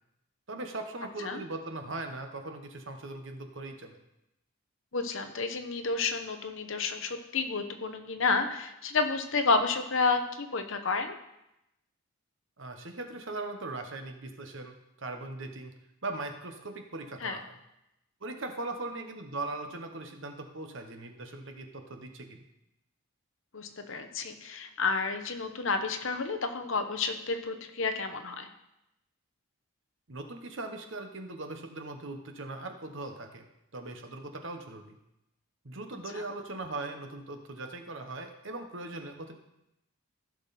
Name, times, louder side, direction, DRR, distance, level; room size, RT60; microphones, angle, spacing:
voice 1, 0.5-4.0 12.6-15.7 16.0-17.6 18.2-22.4 30.1-33.5 33.7-35.0 35.6-39.3, right 2 dB, 55° right, 5 dB, 1.2 m, -39 dB
voice 2, 4.9-11.2 17.2-17.4 23.5-28.5 36.1-36.2, left 4 dB, 60° left, 7 dB, 0.9 m, -30 dB
15.0 x 6.3 x 4.2 m, 0.86 s
head